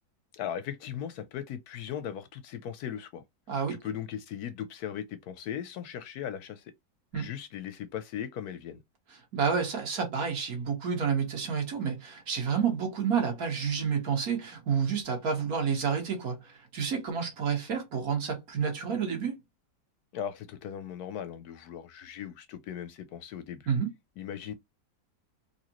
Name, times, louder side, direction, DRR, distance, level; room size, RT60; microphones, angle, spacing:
voice 1, 0.3-3.2 3.7-6.6 7.1-8.8 20.1-23.7 24.2-24.5, left 9 dB, 70° left, 1.0 m, -38 dB
voice 2, 3.5-3.8 7.1-7.3 9.3-19.4 23.7-23.9, right 6 dB, 55° right, 1.8 m, -29 dB
4.2 x 2.6 x 2.9 m
omnidirectional pair, 1.9 m